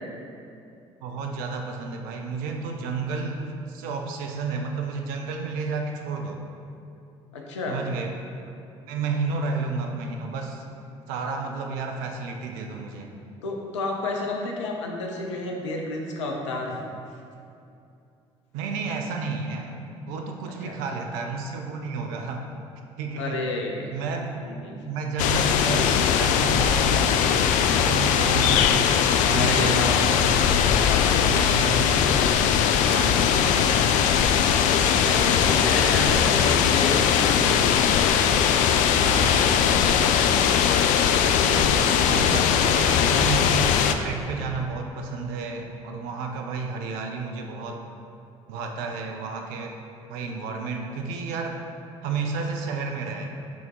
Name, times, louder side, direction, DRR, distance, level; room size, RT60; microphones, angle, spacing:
voice 1, 1.0-6.4 7.7-8.1 8.5-8.6 8.8-10.6 11.1-13.1 18.5-22.4 23.0-23.4 23.9-24.3 24.9-27.1 27.5-30.3 30.9-32.1 32.8-34.2 35.5-35.8 39.0-40.6 41.5-47.8 48.5-49.8 50.1-51.6 52.0-53.3, right 4 dB, 65° right, 3 dB, 0.5 m, -31 dB
voice 2, 7.3-7.8 13.4-16.8 20.6-20.7 23.2-23.9 24.3-24.7 29.3-30.3 30.8-31.1 35.0-37.9, left 2 dB, 80° left, 1 dB, 0.7 m, -30 dB
sound 1, 25.2-43.9, left 8 dB, 55° left, 0.4 m, -20 dB
6.1 x 3.6 x 4.6 m, 2.6 s
figure-of-eight pair, 55°, 15 cm